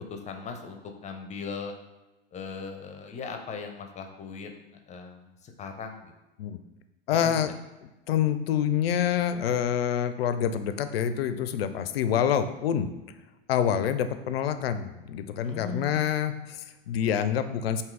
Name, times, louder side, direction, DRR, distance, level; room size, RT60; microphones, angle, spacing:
voice 1, 0.1-1.7 2.3-6.1 7.1-7.5 15.4-16.1, left 4 dB, 25° left, 5 dB, 0.6 m, -39 dB
voice 2, 7.1-7.5 8.1-12.9 13.5-17.8, left 9 dB, 75° left, 10 dB, 0.5 m, -27 dB
3.7 x 2.8 x 4.6 m, 1.0 s
hypercardioid pair, 90°, 30 cm